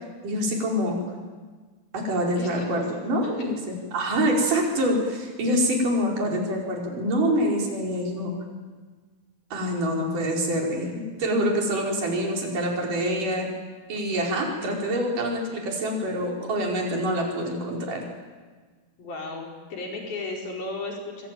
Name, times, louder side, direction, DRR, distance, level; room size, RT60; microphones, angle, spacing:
voice 1, 0.2-1.0 1.9-8.3 9.5-13.5 13.9-18.0, equal, 55° right, -1 dB, 6.5 m, -26 dB
voice 2, 2.4-2.7 2.9-3.0 3.3-3.4 19.0-21.3, left 3 dB, 65° left, 0 dB, 6.7 m, -35 dB
26.0 x 22.0 x 9.2 m, 1.4 s
omnidirectional pair, 4.6 m